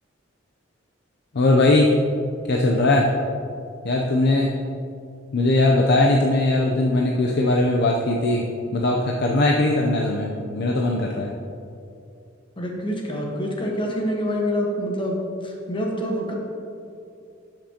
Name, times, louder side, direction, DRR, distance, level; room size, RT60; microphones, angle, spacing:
voice 1, 1.3-1.9 2.5-3.1 3.8-4.5 5.3-8.5 8.7-11.3, left 2 dB, 55° left, 0 dB, 0.5 m, -20 dB
voice 2, 12.6-16.3, equal, 25° left, -1 dB, 1.1 m, -26 dB
11.5 x 6.0 x 2.8 m, 2.6 s
head